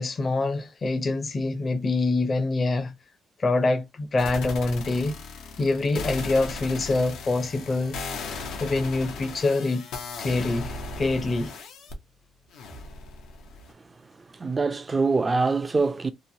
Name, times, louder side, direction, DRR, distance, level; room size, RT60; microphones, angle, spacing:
voice 1, 0.0-2.9 3.4-5.1 5.6-8.0 8.6-9.8 10.2-11.5, left 3 dB, 40° left, 0.6 m, -25 dB
sound 1, 4.2-11.9 12.5-13.7, left 3 dB, 85° left, 0.7 m, -37 dB
voice 2, 13.8-16.1, right 4 dB, 30° right, 0.4 m, -25 dB
3.0 x 2.1 x 2.6 m
cardioid pair, 90°, 0 cm